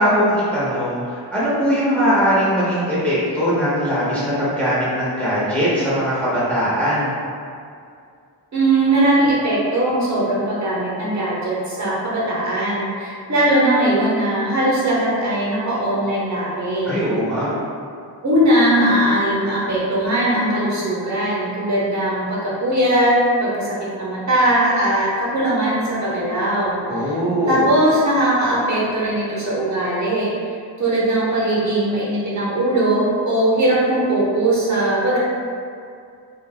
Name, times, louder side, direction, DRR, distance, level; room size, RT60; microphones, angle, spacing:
voice 1, 0.0-7.1 16.8-17.5 26.9-27.7, equal, 5° left, -10 dB, 0.7 m, -20 dB
voice 2, 8.5-17.0 18.2-27.1 27.5-30.3 30.8-35.2, right 1 dB, 40° right, -7 dB, 0.8 m, -19 dB
2.4 x 2.3 x 3.5 m, 2.3 s
wide cardioid pair, 120°, 43 cm